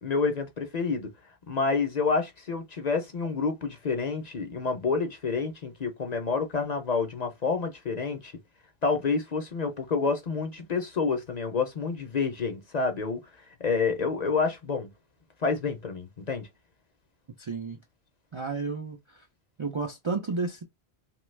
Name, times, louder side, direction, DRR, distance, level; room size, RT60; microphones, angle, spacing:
voice 1, 0.0-1.1 1.5-8.3 8.8-13.2 13.6-14.9 15.4-16.5, left 4 dB, 45° left, 0.7 m, -28 dB
voice 2, 17.4-17.8 18.3-19.3 19.6-20.6, right 4 dB, 45° right, 0.4 m, -32 dB
3.0 x 2.3 x 3.1 m
omnidirectional pair, 1.1 m